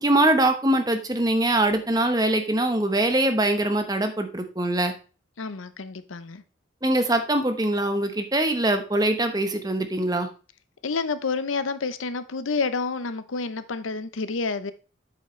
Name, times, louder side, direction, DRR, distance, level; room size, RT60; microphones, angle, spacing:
voice 1, 0.0-4.9 6.8-10.3, right 1 dB, 20° right, 7 dB, 0.9 m, -23 dB
voice 2, 5.4-6.4 10.8-14.7, left 4 dB, 80° left, 13 dB, 0.7 m, -29 dB
8.1 x 7.1 x 3.2 m, 0.34 s
head